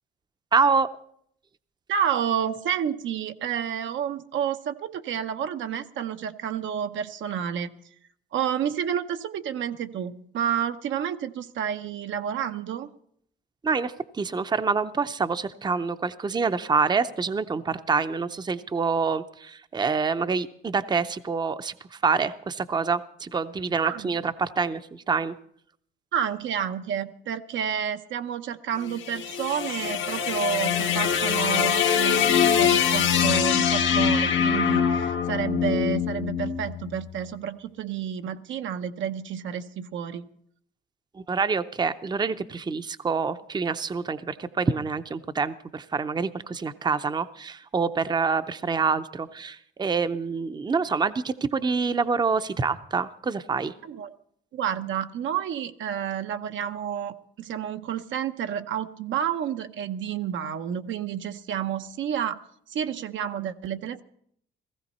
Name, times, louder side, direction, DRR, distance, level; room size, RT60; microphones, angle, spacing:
voice 1, 0.5-0.9 13.6-25.3 41.1-53.7, right 5 dB, 20° right, 12 dB, 0.6 m, -26 dB
voice 2, 1.9-7.7 8.3-12.9 23.8-24.2 26.1-40.3 53.8-54.1 54.5-62.4 62.7-64.0, right 9 dB, 75° right, 8 dB, 0.7 m, -30 dB
sound 1, 28.8-37.1, left 8 dB, 75° left, 1.1 m, -23 dB
16.5 x 15.0 x 4.2 m, 0.66 s
cardioid pair, 90°, 20 cm